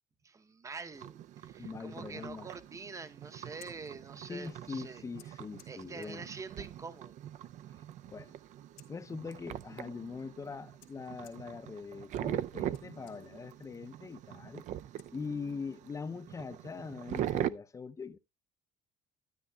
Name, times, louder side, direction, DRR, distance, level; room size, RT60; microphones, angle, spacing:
voice 1, 0.2-5.0 5.7-7.2, right 4 dB, 20° right, 0.7 m, -46 dB
sound 1, 0.9-17.5, right 11 dB, 50° right, 0.4 m, -42 dB
voice 2, 1.6-2.5 4.3-6.3 8.1-8.3 8.9-14.6 15.1-18.2, left 5 dB, 20° left, 0.5 m, -42 dB
Scissors, 3.3-15.7, left 11 dB, 70° left, 1.6 m, -66 dB
12.5 x 9.2 x 2.2 m
cardioid pair, 130°, 16 cm